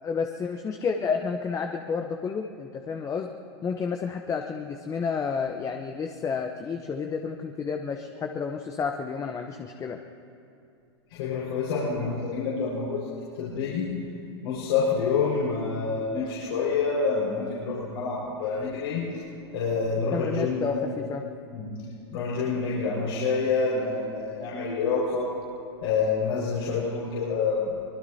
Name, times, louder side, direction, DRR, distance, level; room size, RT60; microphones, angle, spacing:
voice 1, 0.0-3.3 3.6-10.0 20.1-21.2, left 5 dB, 25° left, 4 dB, 0.9 m, -30 dB
voice 2, 11.1-13.1 13.3-13.9 14.4-19.1 19.5-20.9 21.5-21.7 22.1-25.3 25.8-27.7, left 4 dB, 70° left, -7 dB, 5.2 m, -27 dB
24.5 x 20.5 x 2.8 m, 2.6 s
hypercardioid pair, 110°, 14 cm